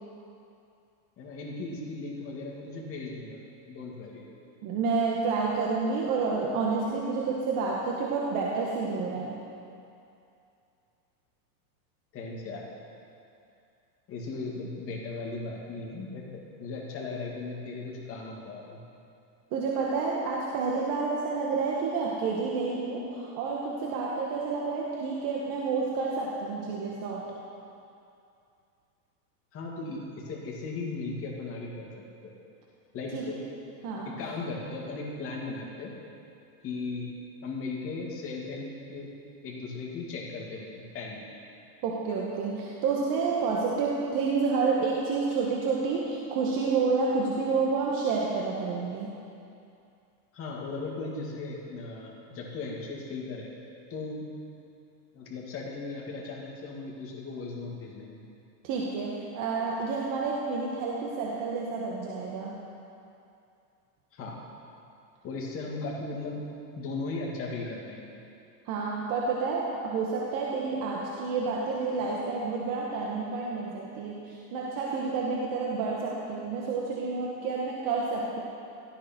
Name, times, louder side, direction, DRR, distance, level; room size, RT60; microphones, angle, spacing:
voice 1, 1.2-3.4 3.7-4.2 12.1-12.6 14.1-18.8 29.5-31.9 32.2-32.3 32.9-33.4 34.2-35.9 36.6-37.1 37.4-39.1 39.4-41.2 50.3-53.5 53.9-54.2 55.1-58.2 64.1-64.4 65.2-66.4 66.8-68.1, left 3 dB, 25° left, -3 dB, 2.5 m, -37 dB
voice 2, 4.6-9.3 19.5-27.3 33.1-33.3 33.8-34.2 41.8-49.1 58.6-62.6 68.6-78.4, right 4 dB, 40° right, -3 dB, 1.7 m, -29 dB
17.0 x 13.0 x 4.6 m, 2.6 s
supercardioid pair, 145°, 48 cm